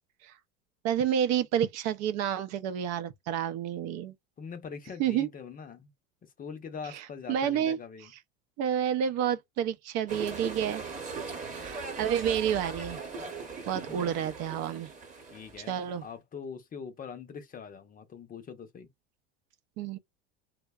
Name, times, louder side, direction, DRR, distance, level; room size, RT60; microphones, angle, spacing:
voice 1, 0.8-4.1 5.0-5.3 6.9-7.0 7.3-7.8 8.6-10.8 11.5-13.0 13.7-14.9 15.7-16.0 19.8-20.0, right 9 dB, 55° right, 0.5 m, -29 dB
voice 2, 4.4-5.9 6.2-8.1 13.9-14.2 15.3-18.9, left 6 dB, 30° left, 0.6 m, -43 dB
sound 1, 10.1-16.0, right 4 dB, 25° right, 0.9 m, -40 dB
2.6 x 2.1 x 2.3 m
hypercardioid pair, 90°, 31 cm